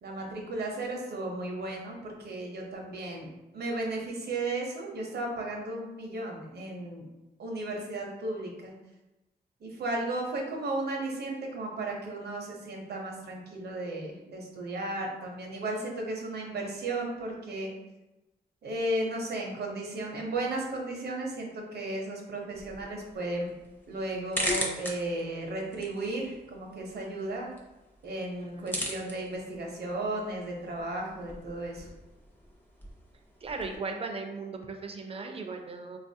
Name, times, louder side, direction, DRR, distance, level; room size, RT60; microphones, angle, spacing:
voice 1, 0.0-3.3 3.5-7.0 7.4-8.7 9.6-17.7 18.6-23.5 23.9-27.5 28.0-31.9, right 2 dB, 70° right, 0 dB, 0.7 m, -34 dB
sound 1, 22.5-33.8, equal, 10° left, 0.6 m, -40 dB
voice 2, 33.4-36.0, right 4 dB, 35° right, 4 dB, 0.4 m, -37 dB
3.7 x 2.4 x 2.7 m, 1.0 s
wide cardioid pair, 100°, 17 cm